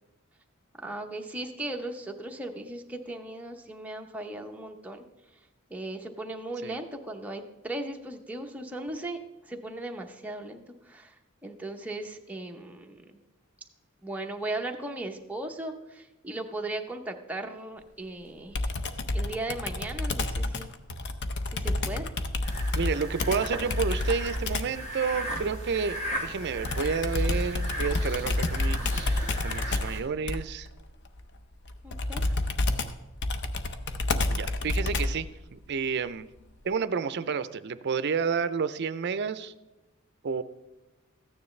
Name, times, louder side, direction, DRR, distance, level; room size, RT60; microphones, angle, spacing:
voice 1, 0.8-5.0 5.7-9.2 9.5-10.6 10.9-11.1 11.4-13.2 14.0-18.7 19.1-20.7 21.5-22.1 31.8-32.2, right 2 dB, 5° right, 2 dB, 0.8 m, -37 dB
Computer keyboard, 18.5-24.8 26.6-35.3, left 2 dB, 55° left, 0.7 m, -29 dB
sound 1, 22.4-30.0, right 1 dB, 30° left, 2.0 m, -36 dB
voice 2, 22.7-30.7 34.3-36.3 36.6-39.5 40.2-40.4, right 5 dB, 55° right, 14 dB, 0.5 m, -30 dB
14.0 x 9.5 x 3.2 m, 1.0 s
head